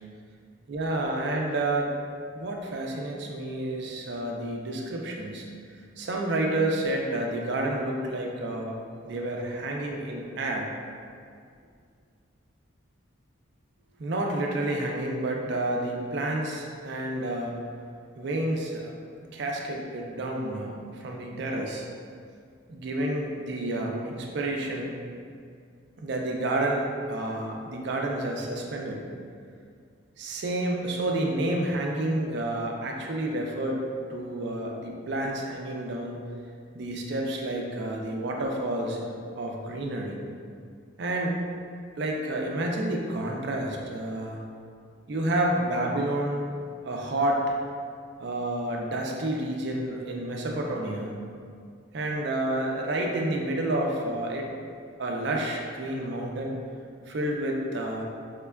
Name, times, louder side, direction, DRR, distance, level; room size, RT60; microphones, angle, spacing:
voice 1, 0.7-1.9 2.3-5.4 6.0-8.8 9.0-10.7 14.0-17.5 18.2-18.9 19.3-21.9 22.7-24.9 26.0-29.0 30.2-33.8 34.1-36.2 36.7-40.2 41.0-41.4 42.0-44.4 45.1-46.4 46.8-47.4 48.2-51.1 51.9-54.5 55.0-56.6 57.1-58.0, right 1 dB, 55° right, 0 dB, 0.4 m, -29 dB
4.9 x 2.2 x 2.2 m, 2.2 s
head